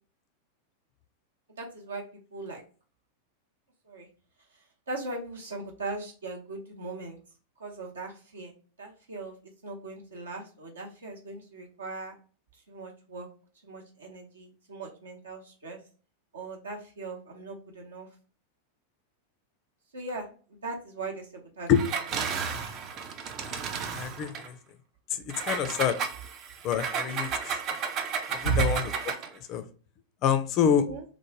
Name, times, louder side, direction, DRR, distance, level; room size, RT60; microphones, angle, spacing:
voice 1, 1.6-2.0 2.3-2.6 3.9-4.1 4.9-7.2 7.6-8.5 8.8-9.3 9.6-12.2 12.7-13.3 13.6-15.8 16.3-18.1 19.9-20.3 20.6-21.7 22.2-22.3 28.4-28.7 30.6-31.0, right 4 dB, 70° right, 0 dB, 0.8 m, -37 dB
Engine, 21.7-24.5 25.3-29.4, right 6 dB, 35° right, 0.4 m, -33 dB
voice 2, 23.9-24.5 25.2-26.0 26.6-27.6 28.6-29.1 29.5-29.6 30.2-30.9, left 8 dB, 35° left, 9 dB, 0.4 m, -26 dB
3.0 x 2.1 x 2.9 m, 0.38 s
figure-of-eight pair, 90°, 0 cm